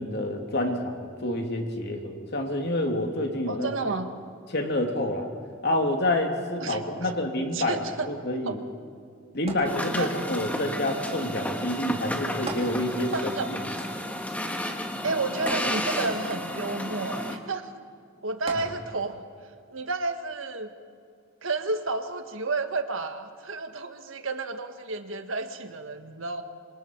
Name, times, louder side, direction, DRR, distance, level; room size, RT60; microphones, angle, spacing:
voice 1, 0.0-3.9 4.5-5.3 5.6-8.6 9.3-13.6 18.5-18.7, left 1 dB, 55° left, 3 dB, 2.8 m, -28 dB
voice 2, 3.5-4.1 6.6-7.1 7.5-8.1 8.4-8.6 10.0-10.1 13.1-13.5 15.0-17.7 18.2-19.2 19.7-20.7 21.4-26.4, right 3 dB, 70° right, 7 dB, 1.5 m, -31 dB
sound 1, 9.5-10.4 12.5-13.3 13.6-13.7 15.5-16.3 18.5-19.2 19.9-20.0, right 2 dB, 30° right, 3.5 m, -39 dB
sound 2, 9.6-17.4, equal, 5° left, 1.6 m, -32 dB
26.5 x 26.0 x 4.6 m, 2.3 s
head